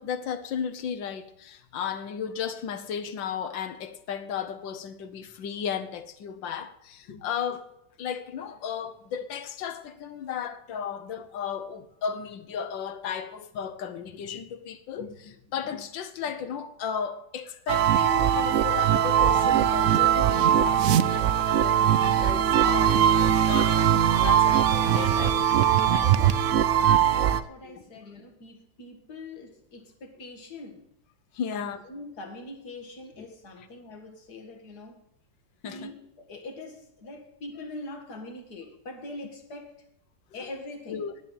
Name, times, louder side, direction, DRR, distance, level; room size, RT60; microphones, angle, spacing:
voice 1, 0.0-25.6 25.9-26.2 27.6-27.8 31.3-31.8 33.2-33.3 35.6-35.9 40.9-41.1, left 7 dB, 85° left, 1.7 m, -35 dB
sound 1, 17.7-27.4, right 9 dB, 75° right, 0.7 m, -21 dB
voice 2, 26.1-30.8 31.5-35.0 35.6-39.7 40.3-41.1, left 2 dB, 60° left, 2.4 m, -43 dB
10.5 x 8.2 x 8.9 m
omnidirectional pair, 2.0 m